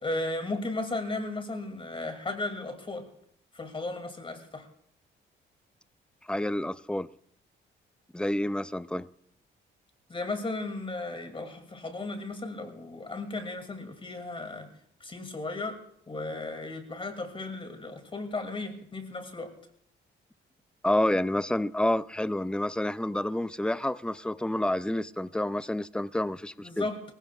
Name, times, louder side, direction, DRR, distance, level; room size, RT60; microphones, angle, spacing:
voice 1, 0.0-3.1 3.5-4.7 10.1-14.7 15.0-15.8 16.1-19.5 26.6-27.1, left 2 dB, 25° left, 2.5 m, -35 dB
voice 2, 6.3-7.1 8.1-9.1 20.8-26.9, left 1 dB, 5° left, 0.5 m, -29 dB
24.0 x 16.0 x 2.4 m
cardioid pair, 90°, 20 cm